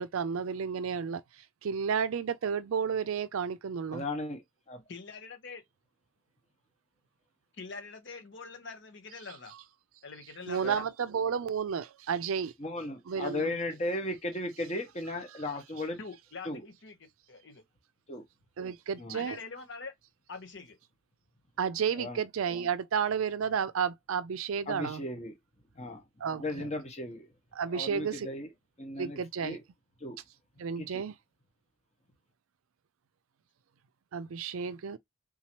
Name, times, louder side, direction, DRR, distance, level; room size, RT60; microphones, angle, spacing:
voice 1, 0.0-4.0 9.5-9.6 10.5-12.5 13.1-13.5 18.6-19.4 21.6-25.0 26.2-26.7 27.5-28.3 29.0-29.6 30.6-31.2 34.1-35.0, right 6 dB, 75° right, 0.4 m, -32 dB
voice 2, 3.9-4.4 4.7-4.8 10.6-10.8 12.6-16.0 16.4-16.7 18.1-18.2 19.0-19.2 22.0-22.2 24.7-25.3 25.8-26.0 26.4-27.3 27.7-28.5 28.8-29.6 30.0-30.2 30.8-31.0, left 1 dB, 30° left, 1.1 m, -36 dB
voice 3, 4.9-5.6 7.6-9.5 10.0-10.9 16.0-17.6 19.1-19.9 20.3-20.8, left 4 dB, 55° left, 1.0 m, -44 dB
3.8 x 2.9 x 2.9 m
head